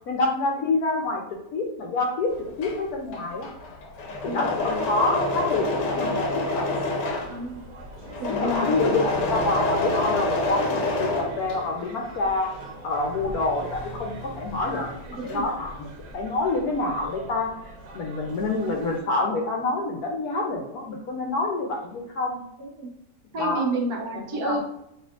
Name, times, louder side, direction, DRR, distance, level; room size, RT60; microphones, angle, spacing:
voice 1, 0.1-1.2 1.5-2.3 2.6-3.5 4.2-6.8 8.3-12.5 12.8-17.5 17.9-22.4 23.4-23.7 24.1-24.6, left 3 dB, 70° left, 1 dB, 1.1 m, -27 dB
Engine / Mechanisms, 2.4-12.0 12.3-14.7 14.9-15.6, left 2 dB, 85° left, 1.4 m, -28 dB
sound 1, 4.5-19.0, right 2 dB, 85° right, 1.4 m, -44 dB
voice 2, 8.2-8.8 15.2-15.4 22.6-22.9 23.3-24.6, right 2 dB, 65° right, 1 dB, 1.3 m, -30 dB
loop meditations no drums, 11.4-14.9, equal, 45° right, 1.1 m, -46 dB
6.8 x 2.8 x 2.3 m, 0.82 s
omnidirectional pair, 1.8 m